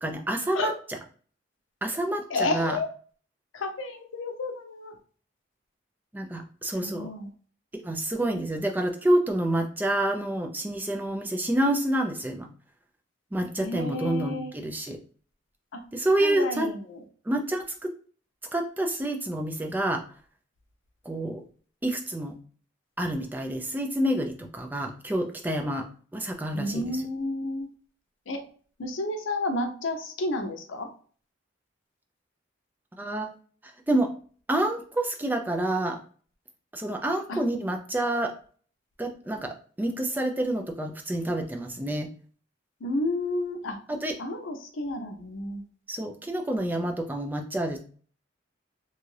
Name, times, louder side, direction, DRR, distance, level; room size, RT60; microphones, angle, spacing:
voice 1, 0.0-1.0 1.8-2.8 6.1-7.1 7.8-12.5 13.3-15.0 15.9-16.7 17.3-17.9 18.5-20.0 21.1-21.4 21.8-22.4 23.0-25.9 26.1-27.0 33.0-33.3 33.9-34.1 34.5-36.0 36.7-38.3 39.0-42.1 43.9-44.1 45.9-47.8, right 1 dB, 10° right, 3 dB, 0.3 m, -28 dB
voice 2, 2.3-2.9 3.5-4.9 6.8-7.3 13.6-14.5 15.7-15.8 16.2-17.0 26.5-27.7 28.3-28.4 28.8-30.9 37.3-37.4 42.8-43.8 44.2-45.6, left 2 dB, 80° left, 6 dB, 0.6 m, -31 dB
2.6 x 2.4 x 3.1 m, 0.43 s
head